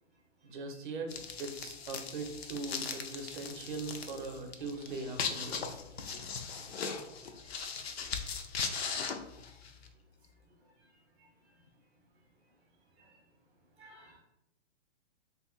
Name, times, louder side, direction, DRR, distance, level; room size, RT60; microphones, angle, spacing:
voice 1, 0.4-1.1 1.4-5.7, right 3 dB, 45° right, 4 dB, 0.7 m, -40 dB
sound 1, 1.1-9.9, left 5 dB, 60° left, 0.5 m, -39 dB
voice 2, 13.8-14.2, right 1 dB, 5° right, -14 dB, 0.6 m, -56 dB
2.8 x 2.6 x 3.7 m, 0.87 s
hypercardioid pair, 170°, 36 cm